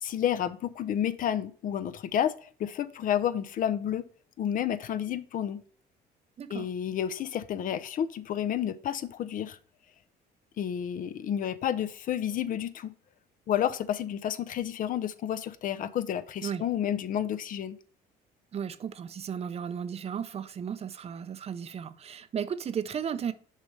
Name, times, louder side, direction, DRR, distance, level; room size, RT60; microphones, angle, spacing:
voice 1, 0.0-4.1 4.4-5.6 6.5-9.6 10.6-12.9 13.5-17.8, left 10 dB, 55° left, 0.6 m, -30 dB
voice 2, 18.5-23.3, right 8 dB, 40° right, 0.5 m, -35 dB
6.5 x 5.2 x 3.3 m
cardioid pair, 110°, 17 cm